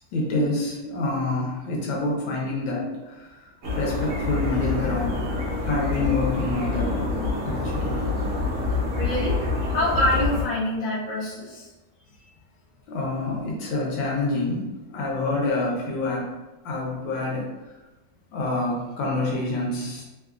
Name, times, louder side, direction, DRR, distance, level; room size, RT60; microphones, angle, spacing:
voice 1, 0.1-3.4 3.8-5.2 5.6-8.1 12.9-16.3 16.6-17.5 18.3-20.0, left 2 dB, 75° left, -3 dB, 1.4 m, -27 dB
sound 1, 3.6-10.4, left 3 dB, 60° right, 0.9 m, -26 dB
voice 2, 8.9-9.4 9.7-11.7, left 1 dB, 40° left, -8 dB, 0.7 m, -25 dB
3.4 x 2.3 x 2.4 m, 1.1 s
omnidirectional pair, 2.1 m